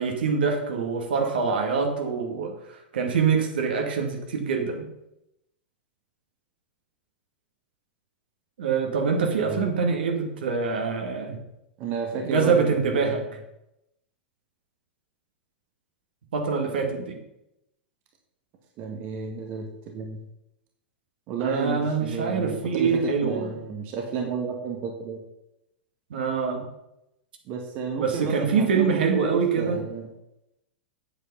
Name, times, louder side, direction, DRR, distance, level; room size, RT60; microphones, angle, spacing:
voice 1, 0.0-4.9 8.6-11.4 12.2-13.2 16.3-17.2 21.4-23.6 26.1-26.6 28.0-29.8, right 5 dB, 60° right, 3 dB, 2.2 m, -25 dB
voice 2, 11.8-13.2 18.8-20.2 21.3-22.9 23.2-25.2 27.5-30.1, right 5 dB, 40° right, 2 dB, 1.7 m, -32 dB
8.7 x 8.3 x 5.6 m, 0.86 s
figure-of-eight pair, 95°, 6 cm